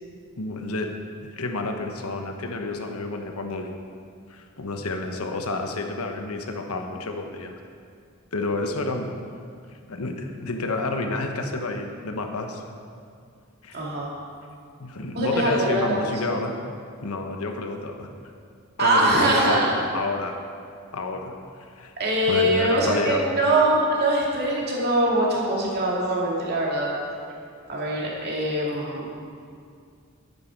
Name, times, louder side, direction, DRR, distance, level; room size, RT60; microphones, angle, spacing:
voice 1, 0.4-0.9 1.2-3.7 4.3-7.5 8.3-9.1 9.9-12.6 13.6-13.8 14.8-16.5 17.0-18.1 18.8-20.3 20.9-21.3 21.8-21.9 22.3-23.2, left 2 dB, 80° left, 4 dB, 1.1 m, -29 dB
voice 2, 13.7-14.1 15.1-16.4 18.8-19.7 22.0-26.9 27.7-29.1, right 1 dB, 50° right, -3 dB, 2.4 m, -23 dB
11.0 x 9.6 x 4.6 m, 2.3 s
head